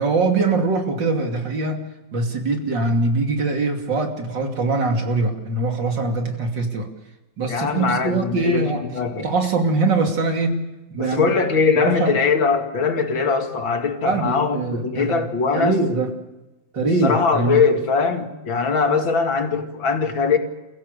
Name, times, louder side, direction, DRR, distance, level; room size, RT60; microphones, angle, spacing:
voice 1, 0.0-1.8 2.1-6.9 7.4-8.9 9.2-11.4 11.7-12.2 14.1-15.3 15.5-16.1 16.7-17.6, right 3 dB, 70° right, 3 dB, 3.4 m, -22 dB
voice 2, 7.5-9.3 11.0-15.8 17.0-20.4, left 5 dB, 85° left, 5 dB, 2.9 m, -21 dB
29.5 x 15.5 x 6.8 m, 1.0 s
omnidirectional pair, 2.1 m